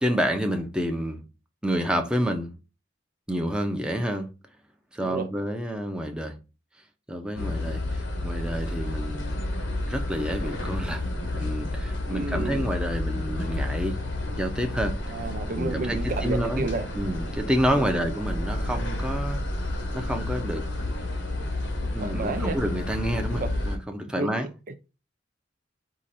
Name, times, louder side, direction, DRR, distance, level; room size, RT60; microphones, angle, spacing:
voice 1, 0.0-1.2 1.6-2.5 3.3-4.3 4.9-6.4 7.1-9.4 9.9-11.0 11.3-14.0 14.4-15.0 15.6-16.7 17.0-19.4 19.9-20.6 21.9-24.5, equal, 5° right, 0.7 m, -29 dB
sound 1, 7.4-23.8, left 1 dB, 70° left, 1.0 m, -30 dB
voice 2, 12.1-12.6 15.1-16.9 17.8-17.9 22.0-22.6 23.3-23.5 24.2-24.3 24.7-24.8, right 3 dB, 45° right, 0.4 m, -31 dB
4.8 x 2.5 x 4.2 m
head